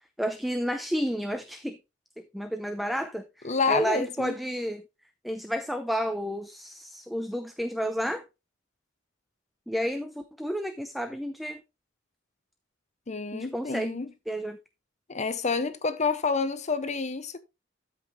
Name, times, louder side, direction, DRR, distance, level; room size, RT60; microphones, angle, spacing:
voice 1, 0.2-1.8 2.3-4.8 5.2-8.2 9.7-11.6 13.3-14.0 14.3-14.6, equal, ahead, 0.6 m, -31 dB
voice 2, 3.4-4.3 13.1-14.1 15.1-17.4, left 4 dB, 35° left, 0.8 m, -28 dB
13.0 x 5.5 x 3.2 m
head